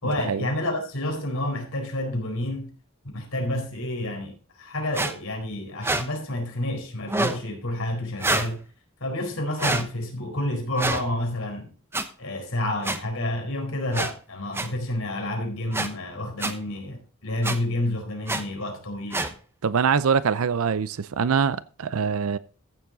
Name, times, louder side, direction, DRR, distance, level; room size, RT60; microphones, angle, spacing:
voice 1, 0.0-2.7 3.1-8.6 9.0-11.7 12.2-19.3, left 1 dB, 70° left, 4.3 m, -29 dB
sound 1, 4.9-5.1 5.8-6.0 7.1-7.4 8.2-8.5 9.6-9.8 10.8-11.0 11.9-12.0 12.8-13.0 13.9-14.1 14.5-14.7 15.7-15.9 16.4-16.5 17.4-17.6 18.3-18.4 19.1-19.3, right 2 dB, 10° right, 0.9 m, -26 dB
voice 2, 19.6-22.4, right 6 dB, 75° right, 0.5 m, -24 dB
14.5 x 7.2 x 3.9 m
head